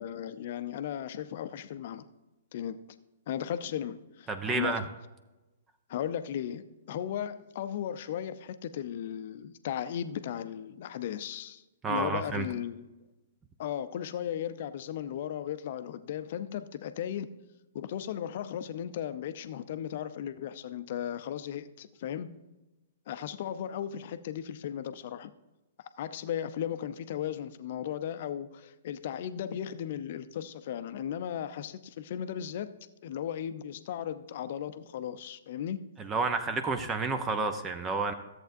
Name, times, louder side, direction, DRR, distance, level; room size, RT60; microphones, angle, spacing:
voice 1, 0.0-2.0 2.5-2.8 3.3-4.9 5.9-12.9 13.6-17.4 17.7-22.4 23.1-25.3 26.0-35.8, left 10 dB, 55° left, 0.6 m, -36 dB
voice 2, 4.3-4.8 11.8-12.5 36.0-38.1, right 4 dB, 20° right, 0.7 m, -30 dB
13.5 x 7.8 x 2.6 m
figure-of-eight pair, 120°, 0 cm